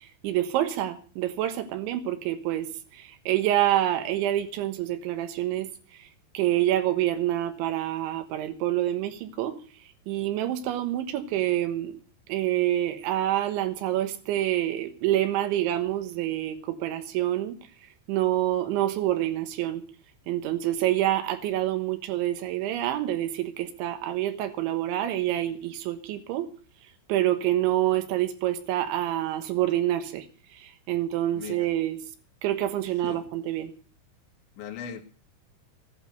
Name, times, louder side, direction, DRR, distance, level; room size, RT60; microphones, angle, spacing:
voice 1, 0.0-6.1 6.3-9.6 10.1-12.0 12.3-17.6 18.1-19.8 20.3-26.5 27.1-32.0 32.4-33.7, right 13 dB, 75° right, 3.5 m, -27 dB
voice 2, 31.3-31.7 33.0-33.3 34.6-35.0, left 8 dB, 70° left, 4.1 m, -39 dB
15.0 x 11.5 x 6.4 m
omnidirectional pair, 5.6 m